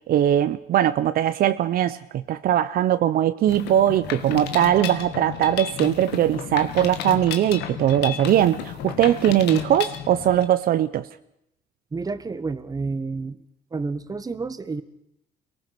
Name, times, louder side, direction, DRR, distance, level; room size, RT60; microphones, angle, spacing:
voice 1, 0.1-11.1, right 11 dB, 60° right, 0.7 m, -20 dB
Mechanisms, 3.5-10.5, left 10 dB, 80° left, 1.6 m, -33 dB
voice 2, 11.9-13.4 13.7-14.8, right 4 dB, 20° right, 1.3 m, -29 dB
24.0 x 19.0 x 6.0 m
cardioid pair, 110°, 17 cm